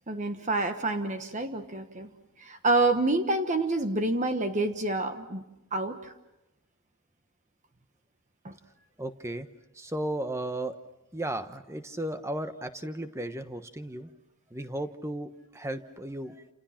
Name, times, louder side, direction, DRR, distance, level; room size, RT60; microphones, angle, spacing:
voice 1, 0.1-2.1 2.4-5.4 5.7-6.1 8.4-8.6, right 2 dB, 35° right, 7 dB, 1.3 m, -28 dB
voice 2, 9.0-9.5 9.7-10.8 11.1-14.1 14.5-16.5, right 1 dB, 15° right, 9 dB, 1.1 m, -35 dB
29.5 x 28.5 x 5.9 m, 0.94 s
head